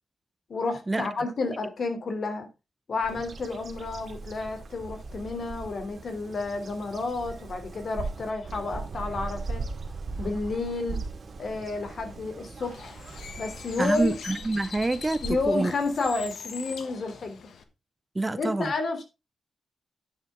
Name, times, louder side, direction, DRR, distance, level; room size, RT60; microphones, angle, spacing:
voice 1, 0.5-2.5 2.9-9.6 10.2-11.0 11.4-12.9 13.4-14.2 15.2-17.5 18.3-19.0, left 3 dB, 55° left, 3.2 m, -31 dB
Bird vocalization bird call bird song, 3.0-16.3, right 3 dB, 50° right, 2.3 m, -39 dB
Bird, 12.6-17.6, left 6 dB, 90° left, 1.5 m, -42 dB
voice 2, 13.8-15.7 18.1-18.7, right 2 dB, 20° right, 0.6 m, -27 dB
10.5 x 9.7 x 3.7 m
wide cardioid pair, 135°, 0 cm